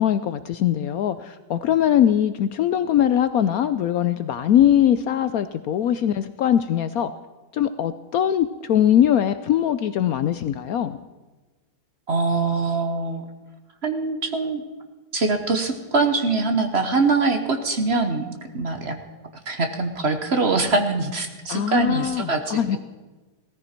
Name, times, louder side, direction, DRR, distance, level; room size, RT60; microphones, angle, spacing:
voice 1, 0.0-7.1 7.5-11.0 21.5-22.8, left 10 dB, 70° left, 12 dB, 0.9 m, -21 dB
voice 2, 12.1-13.2 13.8-14.6 15.1-19.0 19.5-22.8, right 3 dB, 40° right, 6 dB, 1.3 m, -23 dB
17.0 x 14.5 x 4.5 m, 1.2 s
omnidirectional pair, 1.9 m